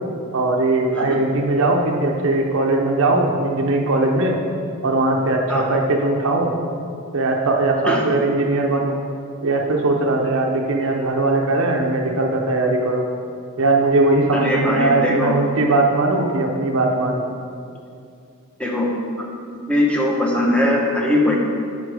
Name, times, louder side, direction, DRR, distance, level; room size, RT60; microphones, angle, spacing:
voice 1, 0.3-4.4 4.8-6.5 7.1-8.9 9.4-13.1 13.6-17.2, right 2 dB, 65° right, 1 dB, 0.7 m, -19 dB
voice 2, 14.3-15.3 18.6-18.9 19.2-19.3 19.5-21.4, left 1 dB, 5° left, -2 dB, 1.0 m, -20 dB
9.5 x 5.6 x 3.4 m, 2.4 s
head